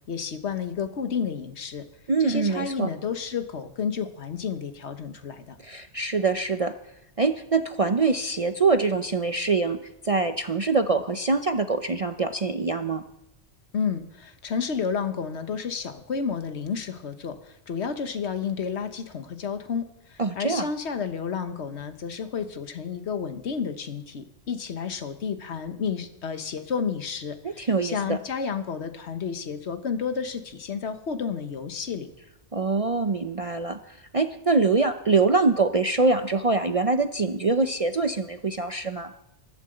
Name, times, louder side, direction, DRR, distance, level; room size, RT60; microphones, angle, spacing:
voice 1, 0.1-1.8 2.2-5.6 13.7-32.1, left 6 dB, 65° left, 9 dB, 1.4 m, -31 dB
voice 2, 2.1-2.9 5.6-6.7 7.2-9.8 10.0-13.0 20.2-20.7 27.4-28.2 32.5-39.1, right 3 dB, 40° right, 8 dB, 0.6 m, -24 dB
12.5 x 11.5 x 7.8 m, 0.88 s
omnidirectional pair, 1.2 m